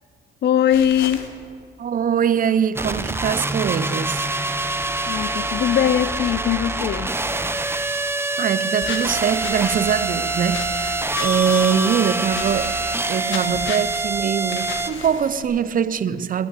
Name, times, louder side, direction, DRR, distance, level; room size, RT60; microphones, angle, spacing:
voice 1, 0.4-1.2 5.1-7.2, left 10 dB, 60° left, 0.7 m, -20 dB
sound 1, 0.7-1.3 8.8-9.8 10.5-11.8 12.3-13.0 13.3-14.0 14.5-15.4, left 6 dB, 75° left, 1.6 m, -34 dB
voice 2, 1.8-4.3 8.4-12.8 13.1-16.5, right 8 dB, 45° right, 0.6 m, -22 dB
sound 2, 2.7-14.9, right 2 dB, 10° right, 0.8 m, -25 dB
18.5 x 7.5 x 8.4 m
cardioid pair, 90°, 20 cm